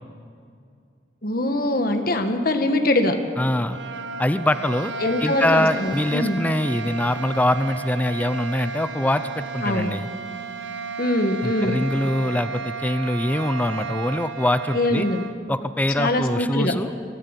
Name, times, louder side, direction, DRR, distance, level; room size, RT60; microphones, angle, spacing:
voice 1, 1.2-3.1 5.0-6.4 9.6-9.9 11.0-11.8 14.7-15.2 16.0-16.7, left 1 dB, 55° left, 6 dB, 1.7 m, -22 dB
voice 2, 3.4-3.8 4.2-4.9 5.2-10.1 11.4-15.1 15.5-16.9, left 1 dB, 10° left, 11 dB, 0.5 m, -23 dB
sound 1, 3.5-15.4, right 5 dB, 85° right, 1.2 m, -34 dB
23.0 x 13.0 x 9.1 m, 2.3 s
head